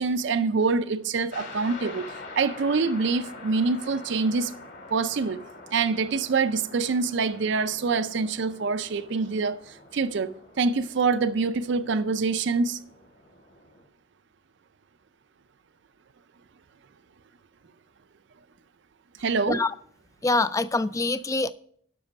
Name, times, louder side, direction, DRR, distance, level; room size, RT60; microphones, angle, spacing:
voice 1, 0.0-4.5 4.9-5.4 5.7-12.8 19.2-19.6, right 4 dB, 55° right, 0.4 m, -25 dB
sound 1, 1.3-13.8, left 3 dB, 55° left, 2.8 m, -45 dB
voice 2, 20.2-21.5, left 3 dB, 15° left, 0.3 m, -24 dB
12.5 x 6.1 x 5.1 m
head